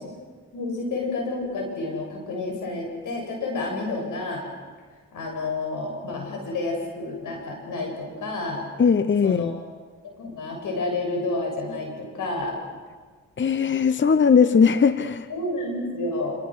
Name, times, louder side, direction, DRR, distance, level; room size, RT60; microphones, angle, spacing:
voice 1, 0.5-4.5 5.1-8.6 9.2-9.6 10.2-12.6 15.3-16.3, left 2 dB, 80° left, 1 dB, 7.5 m, -30 dB
voice 2, 8.8-9.6 13.4-15.3, left 6 dB, 35° left, 12 dB, 0.9 m, -19 dB
27.0 x 27.0 x 6.5 m, 1.5 s
cardioid pair, 65°, 31 cm